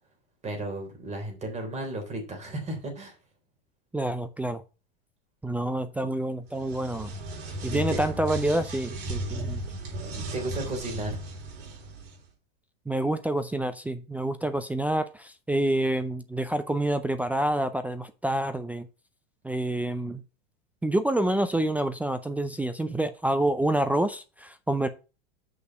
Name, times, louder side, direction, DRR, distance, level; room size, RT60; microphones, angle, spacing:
voice 1, 0.4-3.2 7.7-8.0 10.0-11.2, right 1 dB, 20° right, 3.6 m, -34 dB
voice 2, 3.9-4.6 5.4-7.1 7.6-9.6 12.9-18.9 19.4-20.2 20.8-24.9, right 1 dB, 5° right, 0.5 m, -27 dB
sound 1, 6.5-12.2, right 1 dB, 60° right, 4.2 m, -35 dB
6.4 x 5.5 x 6.1 m
supercardioid pair, 125°, 31 cm